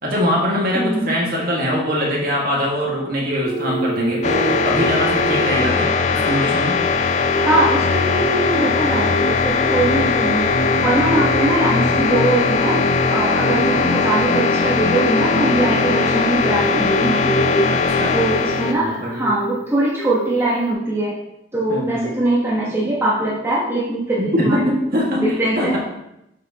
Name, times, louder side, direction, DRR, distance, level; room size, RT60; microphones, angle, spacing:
voice 1, 0.0-6.8 13.5-13.7 17.7-18.2 18.8-19.3 21.7-22.1 24.2-25.2 25.6-25.8, equal, 55° right, -3 dB, 1.8 m, -22 dB
voice 2, 0.7-1.1 7.3-17.7 18.1-21.2 21.5-24.7 25.2-25.8, right 2 dB, 15° right, -6 dB, 1.0 m, -21 dB
Telephone, 3.4-6.7 7.3-7.7 8.0-9.3 9.6-10.0 10.4-13.8 14.1-14.5 14.8-16.9 17.2-18.1 18.4-18.8 19.2-19.6 19.9-20.3 20.7-20.8, right 3 dB, 85° right, 2.0 m, -29 dB
sound 1, 4.2-18.7, left 4 dB, 40° left, 0.4 m, -19 dB
7.5 x 5.8 x 2.9 m, 0.83 s
head